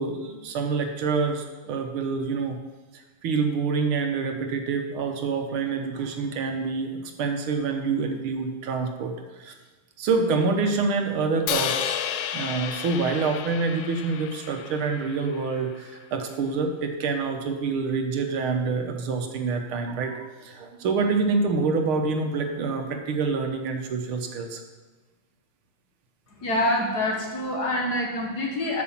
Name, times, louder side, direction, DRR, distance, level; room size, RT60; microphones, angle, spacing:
voice 1, 0.0-2.6 3.2-6.9 7.2-9.5 10.0-12.0 12.3-24.6, right 4 dB, 80° right, 4 dB, 1.8 m, -27 dB
Crash cymbal, 11.5-15.7, left 9 dB, 80° left, 1.5 m, -32 dB
voice 2, 26.4-28.8, left 1 dB, 50° left, 0 dB, 2.2 m, -26 dB
9.5 x 6.2 x 7.2 m, 1.3 s
omnidirectional pair, 2.3 m